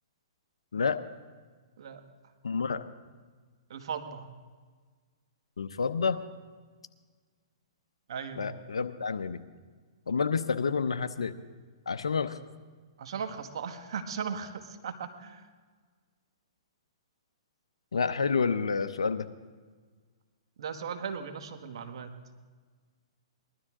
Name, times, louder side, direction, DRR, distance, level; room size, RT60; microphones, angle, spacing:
voice 1, 2.4-2.8 5.6-6.2 8.4-9.4 10.1-11.3 11.9-12.4 17.9-19.3, left 5 dB, 90° left, 8 dB, 0.7 m, -29 dB
voice 2, 3.7-4.3 8.1-8.5 13.0-15.4 20.6-22.1, right 6 dB, 70° right, 8 dB, 1.4 m, -37 dB
20.5 x 12.5 x 3.7 m, 1.5 s
hypercardioid pair, 130°, 3 cm